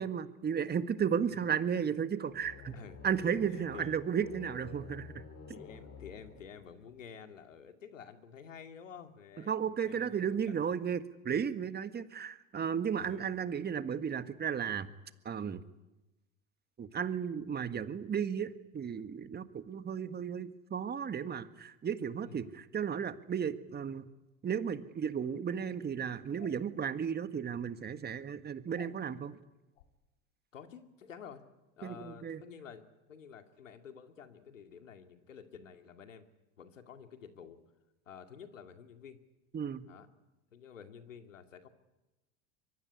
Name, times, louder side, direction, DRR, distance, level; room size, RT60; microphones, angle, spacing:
voice 1, 0.0-2.7 3.0-5.2 9.5-14.9 15.2-15.6 16.8-24.1 24.4-29.4 31.8-32.4 39.5-39.9, right 7 dB, 25° right, 11 dB, 1.7 m, -34 dB
sound 1, 2.3-7.0, left 4 dB, 40° left, 6.7 m, -50 dB
voice 2, 3.5-3.9 5.5-10.7 11.3-11.4 13.0-13.3 22.2-22.4 30.5-31.4 31.8-36.3 36.6-37.6 38.1-39.2 39.9-40.1 40.5-41.7, left 7 dB, 90° left, 7 dB, 2.3 m, -50 dB
sound 2, 26.3-26.6 28.7-29.0 29.7-29.9, left 12 dB, 70° left, 3.4 m, -54 dB
24.5 x 23.0 x 9.8 m, 1.0 s
hypercardioid pair, 85°, 37 cm